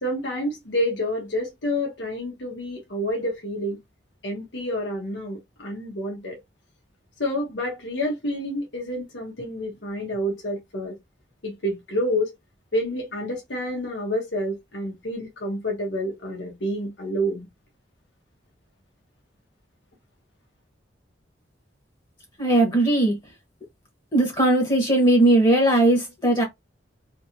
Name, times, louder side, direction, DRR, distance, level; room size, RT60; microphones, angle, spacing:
voice 1, 0.0-3.8 4.2-6.4 7.2-11.0 11.4-12.3 12.7-17.5, equal, 75° left, 1.2 m, -28 dB
voice 2, 22.4-23.2 24.1-26.4, right 1 dB, 25° left, 1.2 m, -18 dB
3.1 x 2.9 x 2.7 m
head